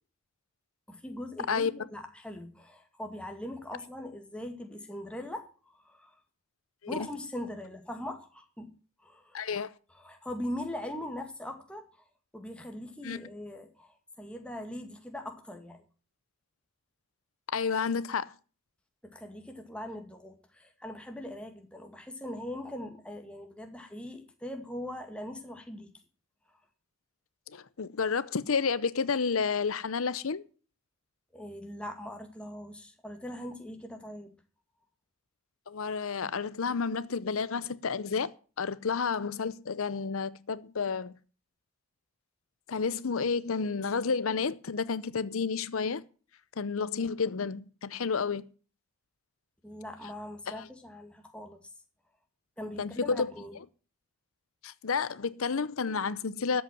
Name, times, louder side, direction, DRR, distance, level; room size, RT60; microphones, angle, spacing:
voice 1, 0.9-6.1 6.9-8.7 9.0-9.4 9.9-12.0 12.3-15.8 19.1-25.9 31.3-34.3 49.6-51.6 52.6-53.5, left 1 dB, 5° left, 2.1 m, -41 dB
voice 2, 9.3-9.7 13.0-13.2 17.5-18.3 27.5-30.4 35.7-41.1 42.7-46.0 46.6-48.4 50.6-50.7 52.8-53.3 54.6-56.6, left 5 dB, 75° left, 0.7 m, -31 dB
13.5 x 8.0 x 7.4 m
head